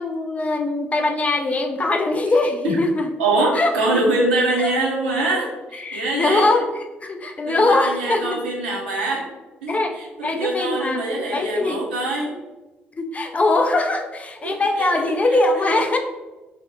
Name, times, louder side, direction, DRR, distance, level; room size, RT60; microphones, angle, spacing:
voice 1, 0.0-3.1 3.5-3.9 4.6-4.7 5.8-8.4 9.7-11.8 12.9-16.0, left 2 dB, 25° left, 4 dB, 0.4 m, -22 dB
voice 2, 3.2-6.6 7.5-9.2 9.6-12.3 14.4-14.9, right 2 dB, 75° right, -2 dB, 0.5 m, -24 dB
2.7 x 2.0 x 2.9 m, 1.1 s
figure-of-eight pair, 45°, 5 cm